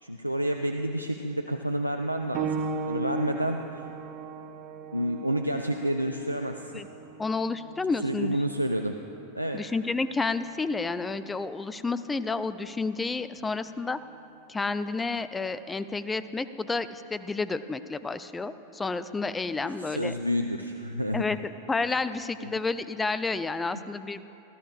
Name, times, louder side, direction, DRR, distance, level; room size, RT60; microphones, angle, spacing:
voice 1, 0.0-2.5 2.9-3.8 4.9-6.7 8.0-9.0 9.3-9.7 19.8-21.3 22.4-22.5, equal, 90° right, 4 dB, 0.4 m, -29 dB
sound 1, 2.3-12.6 13.5-13.6 14.4-14.5, right 4 dB, 35° right, 0.6 m, -38 dB
voice 2, 7.2-8.4 9.5-14.0 14.5-20.1 21.1-24.2, left 3 dB, 10° left, 13 dB, 0.4 m, -30 dB
18.5 x 13.0 x 2.5 m, 2.9 s
figure-of-eight pair, 90°, 0 cm